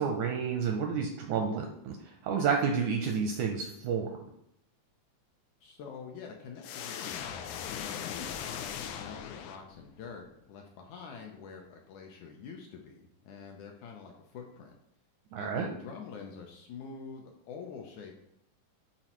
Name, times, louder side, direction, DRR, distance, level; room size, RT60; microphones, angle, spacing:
voice 1, 0.0-2.0 2.2-4.1 15.3-15.7, right 6 dB, 80° right, 3 dB, 1.8 m, -30 dB
voice 2, 5.6-13.0 13.2-14.7 15.4-18.2, left 6 dB, 75° left, 2 dB, 1.9 m, -46 dB
sound 1, 6.6-10.0, left 9 dB, 90° left, 2.3 m, -39 dB
9.8 x 4.4 x 3.0 m, 0.79 s
omnidirectional pair, 4.0 m